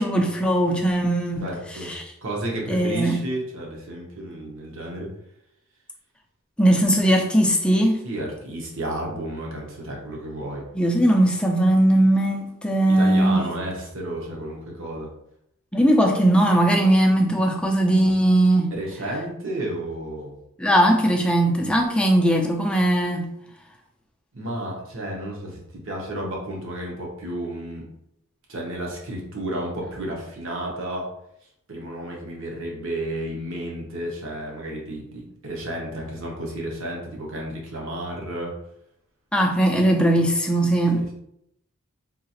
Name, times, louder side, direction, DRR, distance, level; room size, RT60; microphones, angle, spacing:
voice 1, 0.0-1.5 1.8-2.0 2.7-3.2 6.6-8.0 10.7-13.4 15.7-18.7 20.6-23.3 39.3-41.1, right 1 dB, 5° left, 1 dB, 0.4 m, -19 dB
voice 2, 1.4-1.9 2.2-5.1 8.0-10.6 12.9-15.1 18.7-20.3 24.3-27.8 28.5-31.1 31.7-38.5 40.9-41.0, right 1 dB, 60° right, -1 dB, 0.9 m, -32 dB
3.8 x 2.4 x 2.8 m, 0.77 s
head